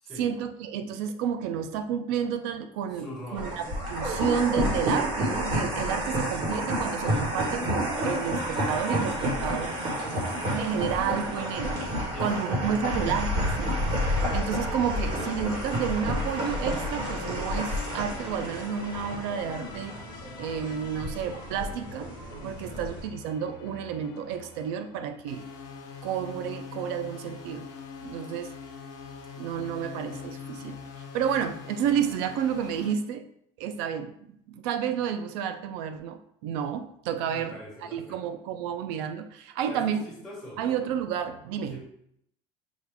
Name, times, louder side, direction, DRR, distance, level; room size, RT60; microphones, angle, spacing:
voice 1, 0.2-3.1 3.3-9.7 10.4-11.8 12.2-13.8 14.3-20.0 20.4-22.1 22.4-25.4 26.0-27.7 28.0-28.5 29.4-33.2 33.6-34.1 34.5-40.0 40.6-41.8, right 8 dB, 75° right, 9 dB, 0.4 m, -31 dB
voice 2, 2.9-3.5 12.1-13.2 22.4-22.8 37.3-38.2 39.7-40.6 41.6-41.9, left 1 dB, 5° left, -7 dB, 1.6 m, -43 dB
sound 1, 3.3-23.1, equal, 40° right, 1.3 m, -30 dB
sound 2, 14.2-25.6, left 5 dB, 35° left, 0.4 m, -46 dB
sound 3, 25.3-32.9, left 6 dB, 55° left, 0.9 m, -42 dB
6.2 x 2.4 x 3.4 m, 0.71 s
cardioid pair, 175°, 13 cm